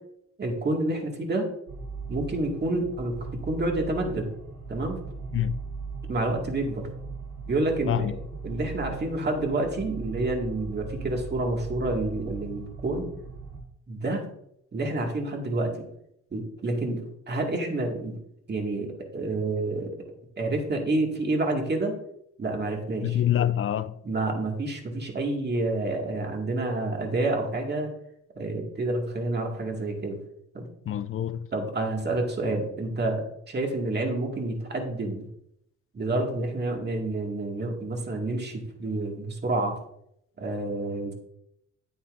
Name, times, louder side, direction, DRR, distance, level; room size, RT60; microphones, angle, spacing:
voice 1, 0.4-1.5 2.1-4.3 4.7-5.0 6.1-6.9 7.5-8.1 8.4-13.1 13.9-14.2 14.7-15.9 16.3-17.0 17.3-18.2 18.5-20.0 20.4-21.9 22.4-23.2 24.0-27.9 28.4-30.2 30.5-30.7 31.5-35.3 35.9-39.7 40.4-41.1, right 2 dB, 35° right, 2.0 m, -28 dB
sound 1, 1.7-13.6, right 4 dB, 85° right, 3.3 m, -39 dB
voice 2, 23.0-23.9 30.9-31.5, left 11 dB, 45° left, 0.5 m, -26 dB
9.2 x 8.6 x 2.6 m
cardioid pair, 90°, 30 cm